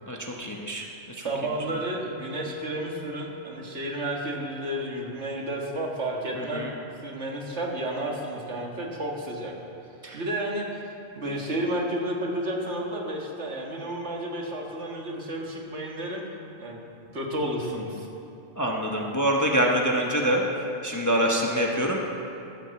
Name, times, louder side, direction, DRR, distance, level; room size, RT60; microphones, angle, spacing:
voice 1, 0.1-0.8 6.5-6.7 10.0-10.2 18.6-20.4 20.8-22.0, equal, 15° left, 0 dB, 0.9 m, -25 dB
voice 2, 1.2-6.7 7.0-9.5 10.1-10.8 11.2-16.2 16.6-16.8 17.1-18.1, right 1 dB, 60° right, -1 dB, 1.9 m, -31 dB
12.5 x 8.8 x 7.6 m, 2.7 s
omnidirectional pair, 1.3 m